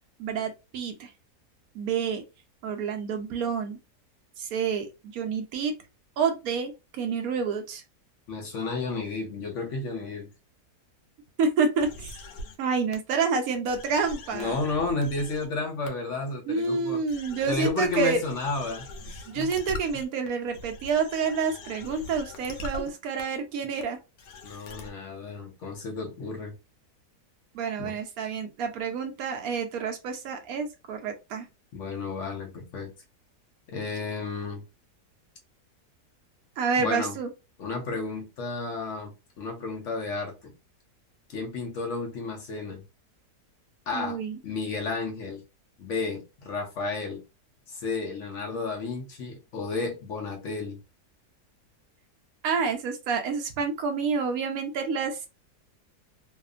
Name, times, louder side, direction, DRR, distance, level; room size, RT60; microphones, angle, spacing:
voice 1, 0.2-1.1 1.7-2.2 2.6-3.8 4.4-5.7 6.2-6.7 7.0-7.8 11.4-12.1 12.6-14.6 16.5-18.2 19.3-24.0 27.5-31.5 36.6-37.3 43.9-44.4 52.4-55.3, right 5 dB, 70° right, 6 dB, 0.9 m, -28 dB
voice 2, 8.3-10.3 14.3-17.0 17.5-19.5 19.9-20.0 24.4-26.5 27.8-27.9 31.7-32.9 33.7-34.6 36.8-37.2 37.6-40.5 41.3-42.8 43.9-44.2 44.4-45.4 45.8-47.2 47.7-50.8, left 3 dB, 65° left, 2 dB, 0.8 m, -32 dB
sound 1, 11.8-12.6 12.9-13.0 13.6-15.5 15.9-16.0 16.6-16.7 17.1-22.9 23.2-23.3 23.8-23.9 24.2-24.9, left 2 dB, 80° left, 1.2 m, -42 dB
2.7 x 2.4 x 2.3 m, 0.27 s
omnidirectional pair, 1.7 m